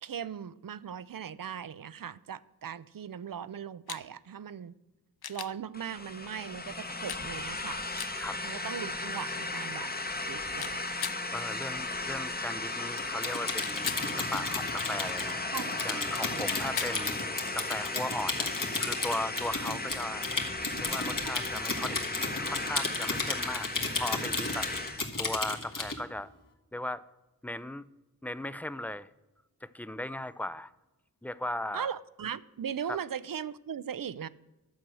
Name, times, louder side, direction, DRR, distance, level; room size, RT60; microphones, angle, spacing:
voice 1, 0.0-4.7 5.3-7.8 8.4-9.9 10.3-10.8 15.5-16.4 31.7-34.3, right 8 dB, 60° right, 18 dB, 0.5 m, -39 dB
sound 1, 3.9-4.0 5.2-5.5 7.1-7.2 8.0-8.1 10.6-11.2 13.6-14.1 16.4-17.0 19.2-19.3, left 8 dB, 75° left, 0.5 m, -37 dB
sound 2, 5.7-25.1, left 2 dB, 25° left, 0.9 m, -36 dB
voice 2, 11.3-15.4 15.8-17.2 17.5-20.3 20.8-23.7 24.0-24.7 25.2-26.3 26.7-27.0 27.4-27.9 28.2-29.1 29.6-30.7 31.2-32.0 32.9-33.0, left 1 dB, 5° left, 16 dB, 0.4 m, -37 dB
Typing, 13.0-26.0, left 3 dB, 55° left, 1.6 m, -34 dB
11.5 x 7.6 x 6.2 m, 1.0 s
wide cardioid pair, 65°, 37 cm